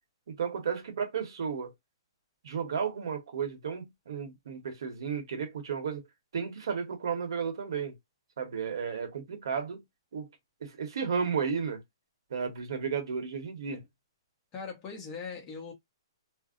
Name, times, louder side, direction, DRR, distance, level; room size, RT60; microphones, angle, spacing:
voice 1, 0.3-1.7 2.4-6.0 6.3-8.0 8.4-9.8 10.1-10.3 10.6-11.8 12.3-13.8, right 6 dB, 65° right, 1.0 m, -33 dB
voice 2, 14.5-15.7, left 5 dB, 20° left, 0.9 m, -40 dB
2.6 x 2.0 x 3.7 m
hypercardioid pair, 170°, 3 cm